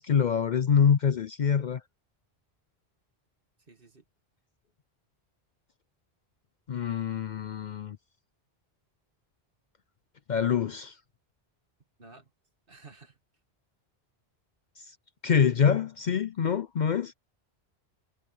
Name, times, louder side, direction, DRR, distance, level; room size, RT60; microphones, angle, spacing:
voice 1, 0.0-1.8 6.7-8.0 10.3-10.9 15.2-17.1, left 7 dB, 50° left, 0.6 m, -25 dB
voice 2, 3.6-4.0 12.0-12.3 12.7-13.2, right 3 dB, 55° right, 2.3 m, -52 dB
omnidirectional pair, 1.1 m